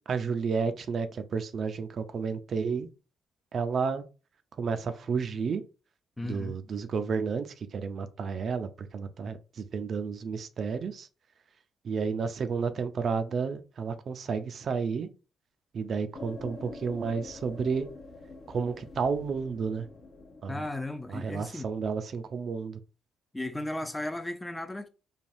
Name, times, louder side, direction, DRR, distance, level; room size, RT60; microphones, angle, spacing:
voice 1, 0.1-2.9 3.5-4.0 4.6-5.6 6.2-11.1 11.8-15.1 15.7-17.9 18.5-19.9 20.4-20.6 21.1-22.8, right 5 dB, 55° right, 0.4 m, -31 dB
voice 2, 6.2-6.6 20.5-21.7 23.3-24.9, left 1 dB, 10° left, 0.4 m, -35 dB
sound 1, 16.1-21.3, left 3 dB, 55° left, 0.8 m, -46 dB
3.3 x 2.2 x 2.6 m
cardioid pair, 90°, 0 cm